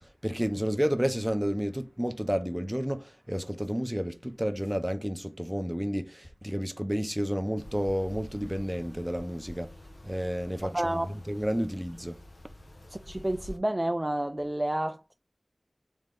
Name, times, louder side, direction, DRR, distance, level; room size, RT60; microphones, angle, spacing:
voice 1, 0.2-9.7 10.0-12.2, equal, 5° right, 0.7 m, -31 dB
sound 1, 7.6-13.6, left 1 dB, 65° left, 0.8 m, -48 dB
sound 2, 7.6-11.5, equal, 25° left, 1.1 m, -59 dB
voice 2, 10.6-11.1 12.9-15.1, right 1 dB, 25° right, 0.3 m, -30 dB
3.6 x 3.4 x 3.7 m
wide cardioid pair, 55°, 0 cm